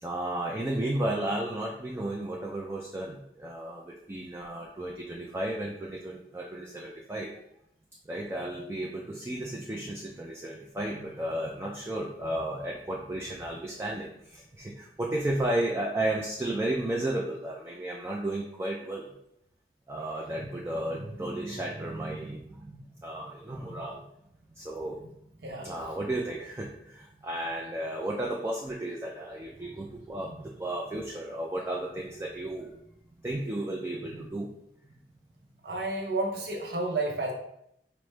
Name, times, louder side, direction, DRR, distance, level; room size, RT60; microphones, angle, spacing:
voice 1, 0.0-7.3 8.1-19.1 19.9-24.0 24.6-25.0 25.6-32.7 33.2-34.5, right 1 dB, 15° right, -1 dB, 0.3 m, -33 dB
voice 2, 25.4-25.8 35.6-37.3, right 2 dB, 65° right, 0 dB, 0.8 m, -31 dB
4.7 x 2.1 x 3.2 m, 0.76 s
head